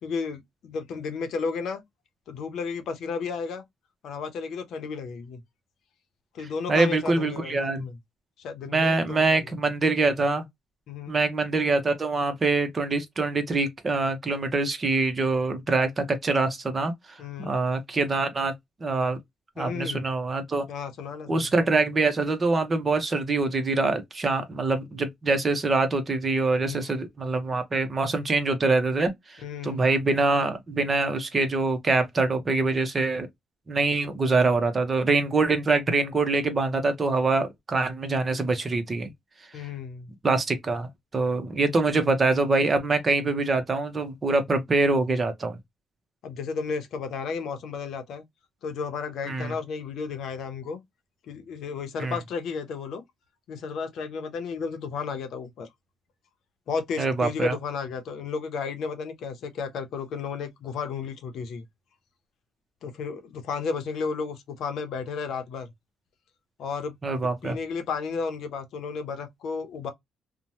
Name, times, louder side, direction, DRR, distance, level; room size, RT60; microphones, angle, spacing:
voice 1, 0.0-1.8 2.3-3.6 4.0-5.4 6.3-8.0 8.4-9.5 10.9-11.2 17.2-17.5 19.6-20.0 20.7-21.5 26.6-26.9 29.4-29.8 39.5-40.1 46.2-48.2 48.6-50.8 51.3-53.0 53.5-55.7 56.7-61.6 62.8-65.7 66.6-67.0 67.4-69.9, left 5 dB, 75° left, 0.7 m, -33 dB
voice 2, 6.7-7.9 8.7-10.5 11.1-18.5 18.8-19.2 19.6-20.6 21.3-33.3 33.7-39.1 40.2-45.6 49.3-49.5 52.0-52.2 57.0-57.6 67.0-67.6, right 3 dB, 35° right, 0.8 m, -24 dB
2.9 x 2.2 x 2.7 m
cardioid pair, 90°, 0 cm